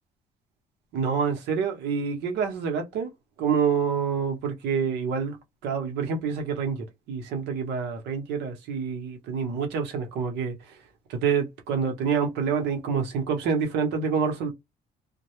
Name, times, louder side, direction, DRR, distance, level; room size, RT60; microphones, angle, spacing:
voice 1, 0.9-3.1 3.4-5.4 5.6-10.8 11.1-14.5, right 6 dB, 85° right, 0.8 m, -27 dB
2.2 x 2.0 x 2.9 m
cardioid pair, 110°, 17 cm